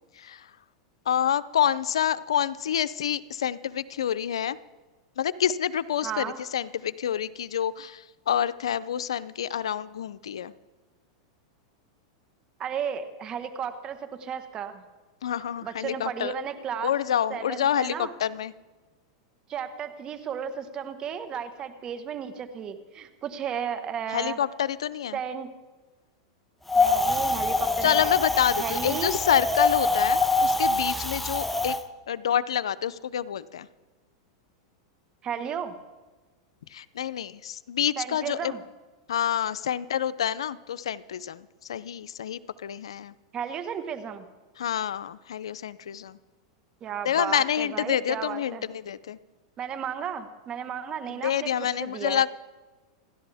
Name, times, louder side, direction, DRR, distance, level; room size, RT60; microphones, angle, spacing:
voice 1, 0.1-0.5 1.1-4.6 5.2-10.5 15.2-16.3 16.8-18.5 24.1-25.2 27.8-31.8 32.1-33.7 36.7-38.5 39.1-43.1 44.6-46.2 47.0-49.2 51.1-52.3, left 9 dB, 90° left, 16 dB, 0.5 m, -28 dB
voice 2, 6.0-6.4 12.6-14.9 15.6-16.9 17.3-18.1 19.5-24.4 25.1-25.5 26.7-28.1 28.6-29.1 35.2-35.8 38.0-38.6 43.3-44.3 46.8-48.7 49.6-51.5 51.8-52.2, right 8 dB, 30° right, 9 dB, 1.4 m, -34 dB
Wind, 26.7-31.8, left 3 dB, 5° left, 0.9 m, -24 dB
28.5 x 11.5 x 3.5 m, 1.3 s
hypercardioid pair, 125°, 3 cm